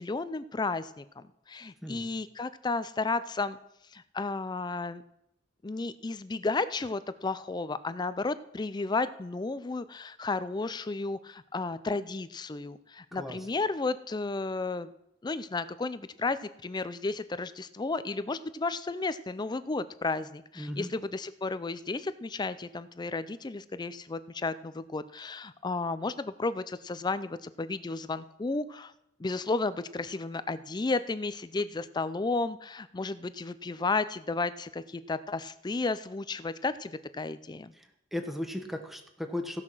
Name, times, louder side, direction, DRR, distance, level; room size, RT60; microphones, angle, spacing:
voice 1, 0.0-3.6 3.9-5.0 5.6-14.9 15.2-28.9 29.2-37.7, left 3 dB, 25° left, 14 dB, 0.4 m, -33 dB
voice 2, 20.6-20.9 37.7-39.6, left 1 dB, ahead, 4 dB, 1.2 m, -36 dB
16.0 x 5.8 x 6.1 m, 0.82 s
head